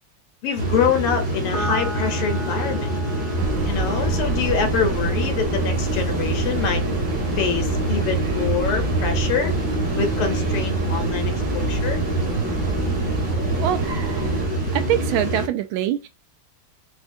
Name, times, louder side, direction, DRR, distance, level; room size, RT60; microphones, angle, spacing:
voice 1, 0.4-2.9 3.7-6.8 7.4-9.5 10.0-12.0, left 6 dB, 85° left, 1.8 m, -25 dB
sound 1, 0.6-15.5, right 1 dB, 30° right, 1.2 m, -25 dB
Piano, 1.5-8.2, right 1 dB, 55° left, 0.5 m, -38 dB
sound 2, 3.4-14.5, right 3 dB, 60° right, 0.9 m, -28 dB
voice 2, 14.7-16.1, right 11 dB, 75° right, 1.3 m, -23 dB
4.9 x 2.2 x 2.6 m
omnidirectional pair, 2.4 m